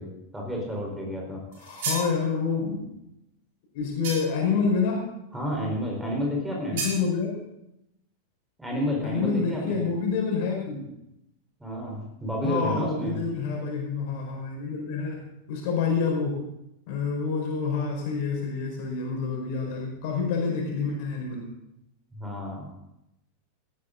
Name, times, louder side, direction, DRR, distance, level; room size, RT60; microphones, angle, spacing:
voice 1, 0.0-1.4 5.3-6.8 8.6-9.8 11.6-13.2 22.2-22.7, equal, 5° right, -2 dB, 4.7 m, -30 dB
voice 2, 1.5-2.9 3.7-5.1 6.7-7.4 9.0-10.9 12.4-15.2 15.5-16.4 16.9-21.5, left 5 dB, 50° left, 0 dB, 5.2 m, -28 dB
sound 1, 1.5-2.1 4.0-4.5 6.8-7.0, right 4 dB, 50° right, 4.8 m, -32 dB
18.0 x 13.0 x 4.1 m, 0.85 s
figure-of-eight pair, 90°, 0 cm